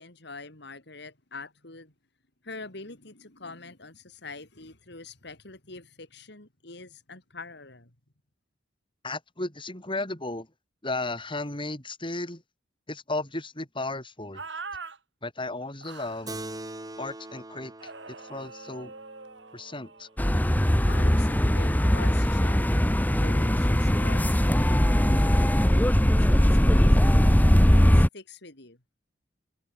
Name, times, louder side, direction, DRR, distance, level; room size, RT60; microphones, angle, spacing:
voice 1, 0.0-1.9 2.4-7.9 20.9-22.8 23.1-26.0 26.3-27.1 27.7-28.8, left 3 dB, 65° left, 3.9 m, -44 dB
voice 2, 9.0-10.5 10.8-12.4 12.9-14.4 15.2-16.4 17.0-18.9 19.5-20.1, left 2 dB, 30° left, 6.8 m, -34 dB
sound 1, 14.3-15.0 15.8-16.3 17.8-20.1, right 4 dB, 80° right, 7.9 m, -42 dB
Keyboard (musical), 16.3-21.1, right 1 dB, 20° right, 3.9 m, -43 dB
sound 2, 20.2-28.1, equal, 10° left, 1.1 m, -20 dB
head